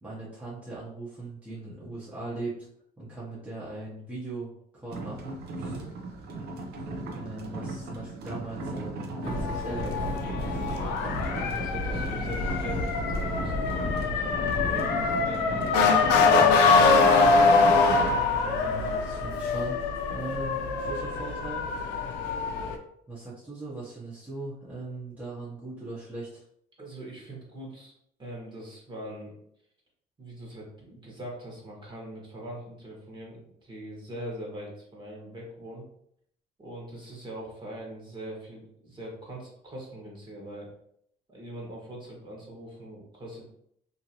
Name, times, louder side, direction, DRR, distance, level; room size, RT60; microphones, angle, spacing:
voice 1, 0.0-2.5 3.0-4.5 4.7-5.8 7.1-10.1 15.2-15.6 18.3-21.6 23.1-26.4, right 2 dB, 10° right, -9 dB, 1.0 m, -39 dB
sound 1, 4.9-18.1, right 2 dB, 70° right, 0.7 m, -37 dB
Motor vehicle (road) / Siren, 9.2-22.8, left 4 dB, 85° left, 0.5 m, -24 dB
sound 2, 9.3-14.8, left 1 dB, 25° left, 1.1 m, -35 dB
voice 2, 10.4-10.9 11.2-14.3 14.6-17.2 26.8-29.3 30.2-35.8 36.6-40.7 41.3-43.5, right 1 dB, 30° right, -3 dB, 1.3 m, -42 dB
2.8 x 2.6 x 2.9 m, 0.69 s
cardioid pair, 110°, 17 cm